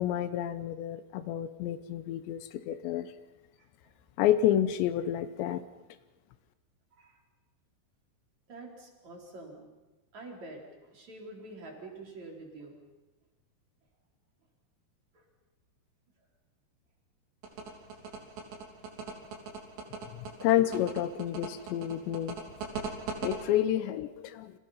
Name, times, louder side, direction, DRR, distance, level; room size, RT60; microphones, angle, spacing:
voice 1, 0.0-2.4 2.7-3.1 4.2-5.6 20.4-22.3 23.2-24.5, left 11 dB, 85° left, 12 dB, 3.2 m, -29 dB
voice 2, 3.6-3.9 6.9-7.2 8.5-9.7 10.1-12.8 15.1-15.2 19.9-20.0, right 2 dB, 40° right, 0 dB, 5.0 m, -47 dB
sound 1, 17.4-23.4, right 5 dB, 75° right, 5.4 m, -38 dB
30.0 x 26.0 x 5.7 m, 1.1 s
omnidirectional pair, 5.0 m